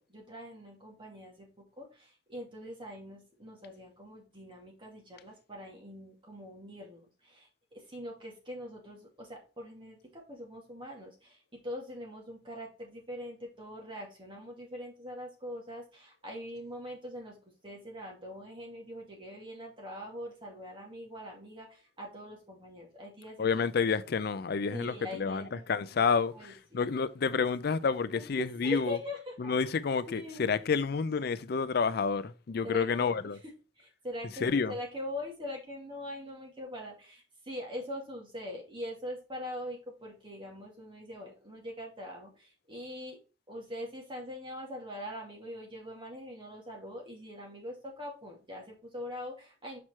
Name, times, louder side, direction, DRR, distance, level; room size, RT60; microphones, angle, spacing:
voice 1, 0.1-1.5 1.8-7.5 7.7-17.4 17.6-23.6 24.7-26.1 26.3-26.8 28.1-29.3 30.1-30.5 32.6-33.2 33.8-43.2 43.5-49.8, left 1 dB, 30° right, 2.3 m, -43 dB
voice 2, 23.4-29.0 29.4-33.4 34.4-34.7, left 5 dB, 60° left, 0.5 m, -29 dB
6.1 x 4.5 x 4.4 m
head